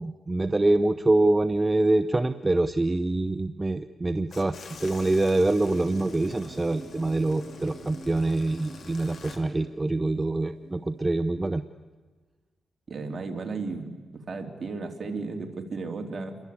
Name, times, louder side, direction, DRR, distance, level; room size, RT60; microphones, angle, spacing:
voice 1, 0.0-11.6, right 2 dB, 20° right, 11 dB, 0.8 m, -25 dB
sound 1, 4.3-9.4, left 5 dB, 70° left, 3.5 m, -47 dB
sound 2, 5.6-11.2, right 3 dB, 70° right, 3.0 m, -45 dB
voice 2, 12.9-16.4, right 3 dB, 45° right, 3 dB, 3.4 m, -34 dB
28.5 x 23.0 x 8.6 m, 1.3 s
cardioid pair, 95°, 0 cm